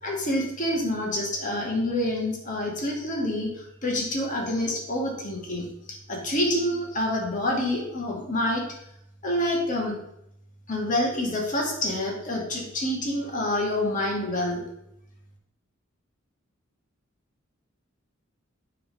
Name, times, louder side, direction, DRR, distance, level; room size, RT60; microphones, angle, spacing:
voice 1, 0.0-5.7 6.1-8.6 9.2-10.0 10.7-14.6, left 1 dB, 40° left, -1 dB, 1.8 m, -27 dB
8.3 x 3.6 x 5.3 m, 0.80 s
head